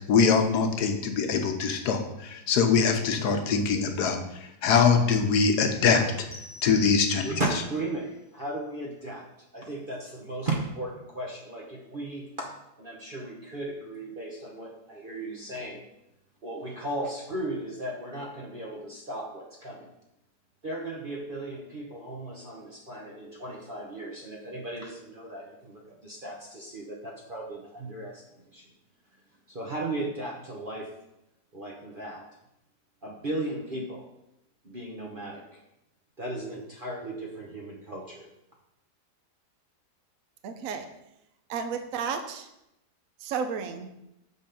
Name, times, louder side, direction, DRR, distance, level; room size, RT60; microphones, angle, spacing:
voice 1, 0.1-4.2 4.6-6.0 6.6-7.2, left 5 dB, 75° left, 5 dB, 1.4 m, -23 dB
sound 1, 6.3-7.8, left 2 dB, 45° left, 1.4 m, -46 dB
voice 2, 7.2-9.3 9.5-12.5 12.8-15.9 16.4-19.9 20.6-28.7 29.5-30.9 31.5-32.2 33.0-34.1 34.6-35.6 36.2-38.3, right 2 dB, 40° right, -2 dB, 0.9 m, -36 dB
voice 3, 40.4-40.9 41.5-42.5 43.2-43.9, right 6 dB, 65° right, 7 dB, 1.0 m, -32 dB
6.2 x 5.4 x 5.1 m, 0.86 s
omnidirectional pair, 1.8 m